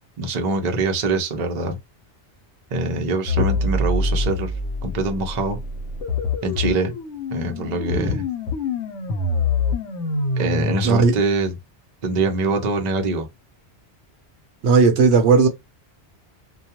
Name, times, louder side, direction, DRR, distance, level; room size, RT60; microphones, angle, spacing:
voice 1, 0.2-1.8 2.7-4.5 4.8-5.6 6.4-6.9 7.3-8.2 10.4-11.6 12.0-13.3, right 3 dB, 45° right, 0.6 m, -23 dB
sound 1, 3.3-10.9, left 3 dB, 80° left, 1.0 m, -25 dB
voice 2, 14.6-15.5, right 4 dB, 75° right, 0.9 m, -15 dB
2.3 x 2.3 x 2.8 m
omnidirectional pair, 1.2 m